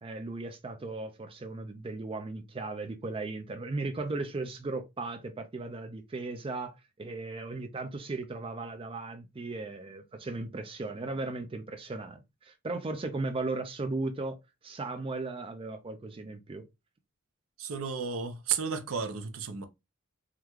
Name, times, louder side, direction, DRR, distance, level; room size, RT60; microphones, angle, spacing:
voice 1, 0.0-14.4 14.6-16.7, right 3 dB, 25° right, 0.4 m, -36 dB
voice 2, 17.6-19.7, right 6 dB, 85° right, 0.6 m, -33 dB
3.7 x 2.2 x 3.0 m
head